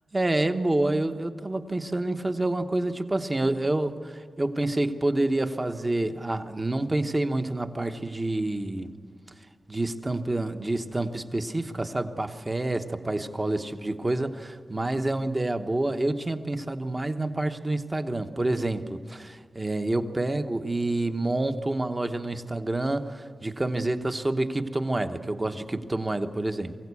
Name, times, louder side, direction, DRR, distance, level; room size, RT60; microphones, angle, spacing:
voice 1, 0.1-8.9 9.7-26.8, right 2 dB, 20° right, 8 dB, 1.0 m, -28 dB
23.0 x 16.5 x 8.4 m, 2.1 s
wide cardioid pair, 140°, 0 cm